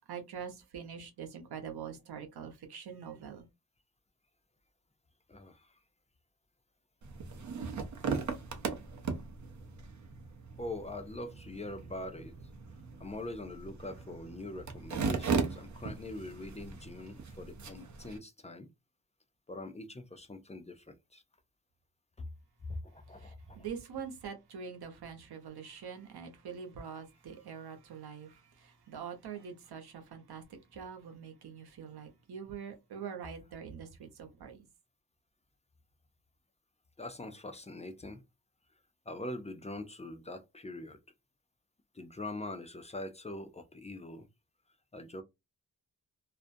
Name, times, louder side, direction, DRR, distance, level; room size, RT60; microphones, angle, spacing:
voice 1, 0.1-3.4 23.2-30.4 30.7-34.7, right 7 dB, 85° right, 0.8 m, -44 dB
voice 2, 5.3-5.8 10.6-12.3 13.0-18.7 19.5-21.2 22.2-22.3 22.7-23.6 37.0-38.2 39.1-41.0 41.9-44.3 44.9-45.2, left 2 dB, 20° left, 0.4 m, -43 dB
sound 1, 7.0-18.2, right 5 dB, 50° right, 0.6 m, -38 dB
2.4 x 2.1 x 2.5 m
wide cardioid pair, 85°, 38 cm